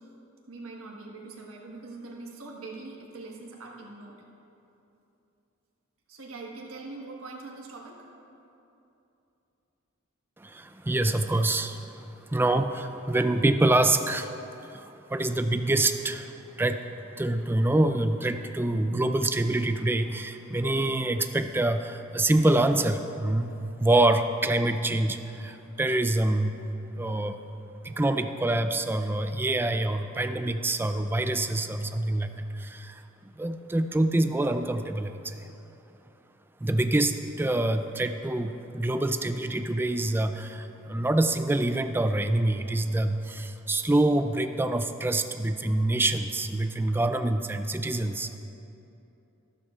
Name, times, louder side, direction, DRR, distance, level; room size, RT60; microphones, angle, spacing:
voice 1, 0.5-4.2 6.1-8.1, right 3 dB, 75° right, -1 dB, 1.4 m, -42 dB
voice 2, 10.4-11.8 12.3-14.4 14.6-16.3 16.6-16.8 17.2-26.6 27.0-27.4 27.8-33.0 33.4-35.4 36.6-48.4, right 2 dB, 10° right, 8 dB, 0.3 m, -26 dB
13.5 x 12.0 x 2.4 m, 2.9 s
head